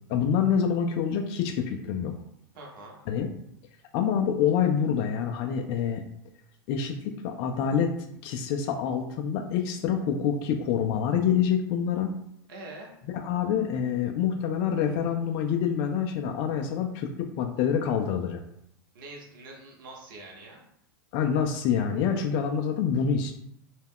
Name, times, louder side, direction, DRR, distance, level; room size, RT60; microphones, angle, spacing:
voice 1, 0.1-2.1 3.1-3.3 3.9-6.0 6.7-7.9 8.2-12.1 13.0-17.1 17.4-18.4 21.1-23.3, left 7 dB, 50° left, 4 dB, 0.3 m, -26 dB
voice 2, 2.5-3.0 12.5-13.0 18.9-20.6, right 2 dB, 65° right, -1 dB, 0.8 m, -44 dB
2.2 x 2.1 x 3.5 m, 0.73 s
hypercardioid pair, 105°, 12 cm